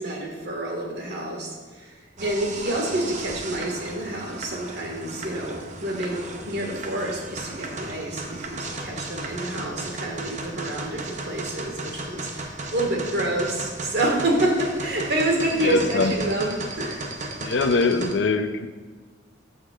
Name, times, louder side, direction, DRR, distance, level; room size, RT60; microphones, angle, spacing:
voice 1, 0.0-17.3, right 1 dB, 60° right, 0 dB, 1.8 m, -28 dB
sound 1, 2.2-18.1, right 2 dB, 40° right, 0.7 m, -35 dB
voice 2, 15.6-16.1 17.4-18.7, left 3 dB, 65° left, 9 dB, 0.5 m, -23 dB
14.0 x 6.6 x 2.5 m, 1.4 s
head